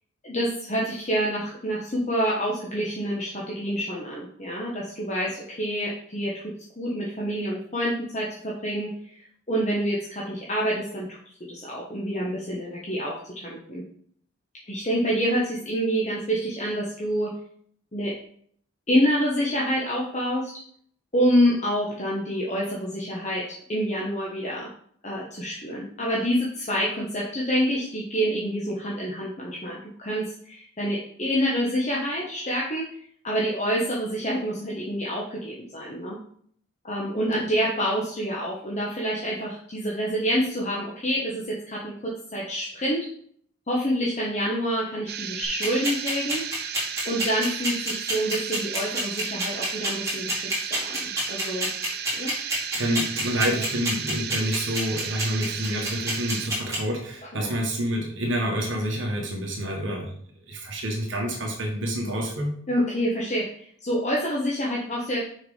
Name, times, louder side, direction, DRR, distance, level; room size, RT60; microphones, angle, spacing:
voice 1, 0.2-11.1 11.5-13.8 14.7-17.3 17.9-18.1 18.9-20.5 21.1-24.7 25.0-32.9 33.2-36.2 36.8-43.1 43.7-46.4 47.0-51.7 52.2-52.3 57.3-57.5 62.7-65.2, equal, 35° left, -5 dB, 1.2 m, -27 dB
sound 1, 45.1-56.5, right 8 dB, 50° right, 0.6 m, -34 dB
sound 2, 45.4-56.8, right 1 dB, 15° right, 2.7 m, -27 dB
voice 2, 52.7-60.1 60.5-62.5, equal, 70° right, 1 dB, 1.6 m, -28 dB
6.3 x 4.9 x 5.0 m, 0.62 s
head